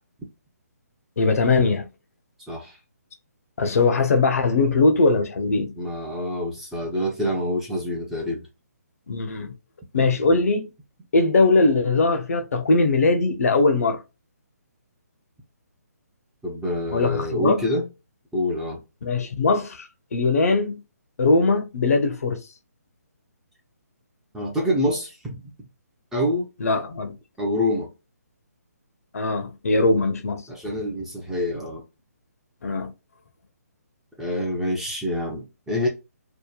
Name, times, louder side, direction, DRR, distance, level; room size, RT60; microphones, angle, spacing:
voice 1, 1.2-1.9 3.6-5.7 9.1-9.5 9.9-10.7 11.1-14.0 16.9-17.6 19.0-19.9 20.1-20.8 21.2-22.4 26.6-27.1 29.1-30.4 32.6-32.9, left 3 dB, 60° left, 0.6 m, -20 dB
voice 2, 5.8-8.4 16.4-17.9 18.3-18.8 24.3-25.4 26.1-26.5 27.4-27.9 30.5-31.8 34.2-35.9, left 1 dB, 5° right, 0.5 m, -26 dB
2.8 x 2.2 x 2.2 m
hypercardioid pair, 155°, 9 cm